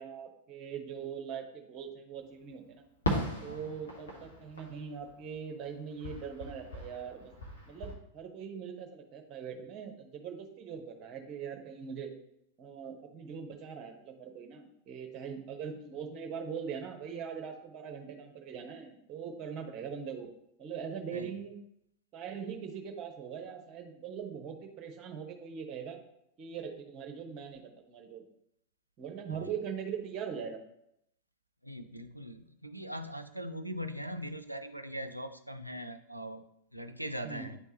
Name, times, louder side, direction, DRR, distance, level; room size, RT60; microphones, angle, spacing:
voice 1, 0.0-2.8 3.4-7.3 7.7-12.1 12.6-20.3 20.6-21.5 22.1-26.0 26.4-28.2 29.0-30.6 37.2-37.5, right 7 dB, 35° right, 4 dB, 1.1 m, -41 dB
Fireworks, 3.0-5.7 6.0-7.9, left 1 dB, 70° left, 1.2 m, -38 dB
voice 2, 31.6-37.6, equal, 90° right, 8 dB, 0.4 m, -41 dB
9.6 x 3.5 x 2.9 m, 0.76 s
figure-of-eight pair, 90°, 0 cm